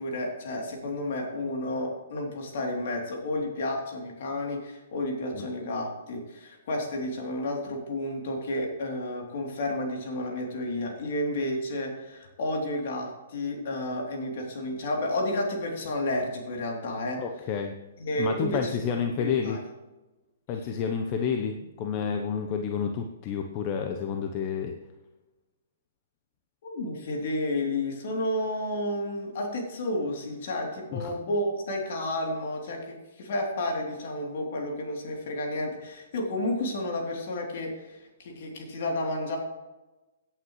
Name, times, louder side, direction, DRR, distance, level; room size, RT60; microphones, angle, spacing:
voice 1, 0.0-17.2 18.0-19.6 26.6-39.4, left 1 dB, 55° left, 0 dB, 3.2 m, -31 dB
voice 2, 17.2-17.8 18.2-19.6 20.5-24.7 30.9-31.2, left 6 dB, 35° left, 5 dB, 0.9 m, -30 dB
17.0 x 8.8 x 3.2 m, 1.1 s
hypercardioid pair, 125°, 0 cm